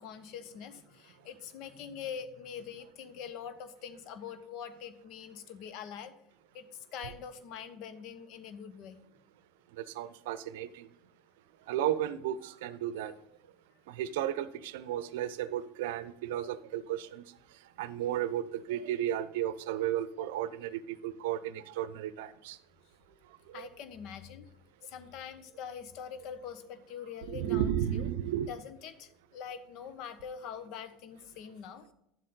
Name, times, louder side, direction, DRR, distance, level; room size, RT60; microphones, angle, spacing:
voice 1, 0.0-6.1 6.5-9.0 23.5-24.5 24.8-28.0 28.5-31.9, left 7 dB, 55° left, 11 dB, 1.1 m, -44 dB
voice 2, 9.8-10.9 11.7-13.1 13.9-17.2 17.8-22.6 23.5-23.7 27.3-28.5, right 11 dB, 70° right, 15 dB, 0.6 m, -34 dB
11.0 x 7.6 x 3.9 m, 0.85 s
hypercardioid pair, 75°, 0 cm